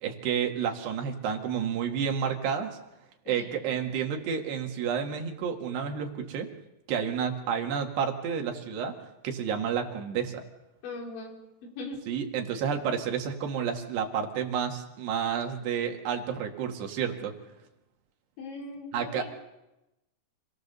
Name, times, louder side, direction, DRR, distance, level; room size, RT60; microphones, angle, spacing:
voice 1, 0.0-2.8 3.3-6.5 6.9-9.0 9.2-10.5 12.1-17.3 18.9-19.2, right 7 dB, 70° right, 3 dB, 3.8 m, -30 dB
voice 2, 3.3-3.7 10.8-12.0 18.4-19.2, left 2 dB, 85° left, 0 dB, 6.4 m, -40 dB
27.5 x 18.0 x 6.8 m, 0.96 s
omnidirectional pair, 5.1 m